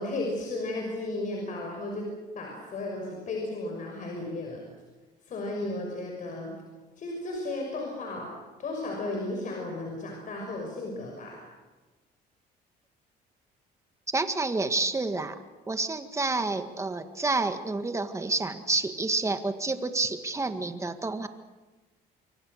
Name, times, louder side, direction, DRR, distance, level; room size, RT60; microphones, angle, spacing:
voice 1, 0.0-2.1 2.3-4.6 5.2-6.5 7.0-8.3 8.6-11.4, left 2 dB, 50° left, 0 dB, 6.1 m, -34 dB
voice 2, 14.1-15.4 15.7-21.3, right 3 dB, 15° right, 8 dB, 1.8 m, -29 dB
26.5 x 23.5 x 6.6 m, 1.2 s
cardioid pair, 110°, 17 cm